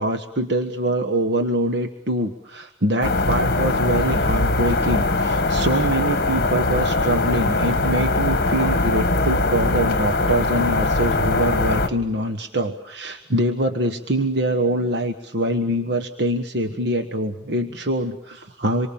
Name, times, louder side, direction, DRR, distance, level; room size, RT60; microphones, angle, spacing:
voice 1, 0.0-18.9, right 1 dB, 55° right, 5 dB, 1.4 m, -24 dB
sound 1, 3.0-11.9, left 2 dB, 50° left, 1.7 m, -21 dB
27.5 x 24.0 x 7.2 m, 0.80 s
head